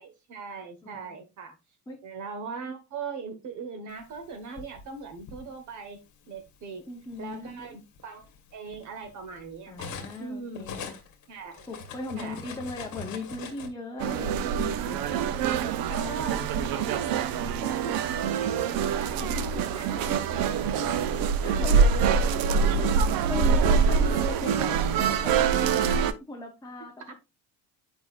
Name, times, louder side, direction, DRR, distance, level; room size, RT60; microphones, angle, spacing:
voice 1, 0.0-1.6 2.0-6.0 6.3-6.9 7.2-9.9 10.2-10.9 11.3-11.7 12.1-12.4 15.5-19.4 19.7-23.0 25.8-26.1 27.0-27.1, right 5 dB, 55° right, 1.2 m, -40 dB
voice 2, 0.8-1.2 1.9-2.0 6.9-7.8 9.7-10.8 11.7-15.0 16.2-16.7 17.6-18.0 19.2-19.6 19.9-22.2 22.8-27.1, left 2 dB, 10° left, 0.8 m, -39 dB
Cutlery silverware, 4.2-5.4 6.4-6.6 7.0-10.3 10.5-13.7, left 5 dB, 50° left, 1.3 m, -42 dB
sound 1, 14.0-26.1, right 6 dB, 70° right, 0.7 m, -25 dB
8.1 x 5.1 x 2.4 m
cardioid pair, 170°, 36 cm